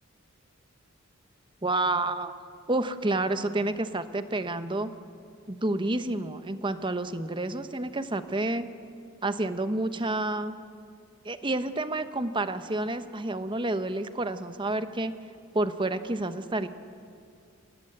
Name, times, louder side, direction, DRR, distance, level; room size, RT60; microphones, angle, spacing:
voice 1, 1.6-2.4 2.7-4.9 5.5-8.6 9.2-10.6 11.2-15.1 15.5-16.7, right 2 dB, 25° right, 11 dB, 0.9 m, -29 dB
26.5 x 18.5 x 8.8 m, 2.4 s
head